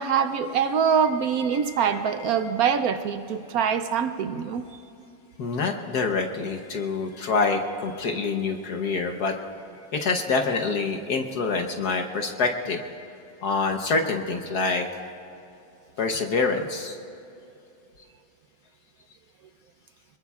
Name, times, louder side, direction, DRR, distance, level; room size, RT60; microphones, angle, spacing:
voice 1, 0.0-4.6, right 7 dB, 70° right, 10 dB, 0.9 m, -24 dB
voice 2, 1.5-2.1 5.4-9.4 9.9-12.8 13.4-15.1 16.0-17.0, left 4 dB, 60° left, 4 dB, 1.4 m, -26 dB
24.5 x 21.0 x 2.4 m, 2.7 s
omnidirectional pair, 2.1 m